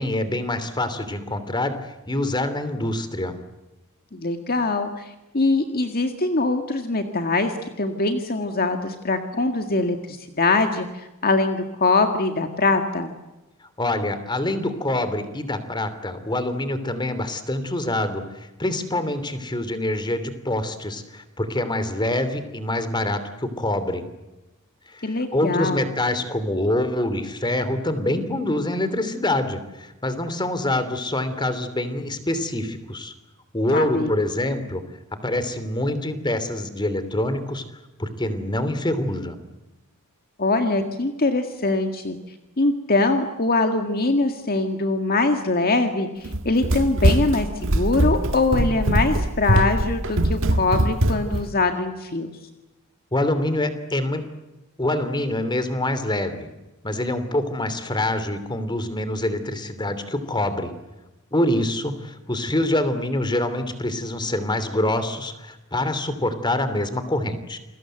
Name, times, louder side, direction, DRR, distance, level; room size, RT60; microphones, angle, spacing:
voice 1, 0.0-3.4 13.8-24.0 24.9-33.1 33.5-34.8 35.2-37.6 38.0-39.4 53.1-54.2 54.8-56.5 56.8-60.7 61.3-67.6, left 1 dB, 20° left, 12 dB, 2.9 m, -25 dB
voice 2, 4.1-13.1 25.0-25.8 33.7-34.1 40.4-42.2 42.6-47.5 47.7-52.3, left 3 dB, 45° left, 6 dB, 1.9 m, -23 dB
Run, 46.2-51.5, right 1 dB, 65° right, 1.7 m, -21 dB
29.0 x 21.5 x 7.9 m, 1.0 s
head